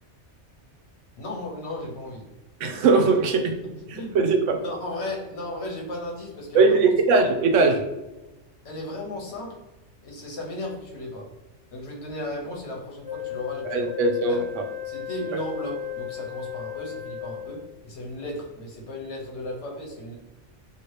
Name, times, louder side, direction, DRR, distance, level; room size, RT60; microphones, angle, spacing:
voice 1, 1.2-2.3 3.6-6.8 8.6-9.6 10.0-11.3 11.7-14.4 14.8-20.2, left 1 dB, 65° left, -2 dB, 1.2 m, -35 dB
voice 2, 2.6-3.6 3.9-4.6 6.5-7.8 13.6-14.6 15.3-15.4, right 4 dB, 80° right, 5 dB, 0.9 m, -20 dB
Wind instrument woodwind instrument, 13.0-17.8, left 10 dB, 45° left, 0.9 m, -35 dB
2.8 x 2.7 x 3.1 m, 1.0 s
omnidirectional pair, 1.2 m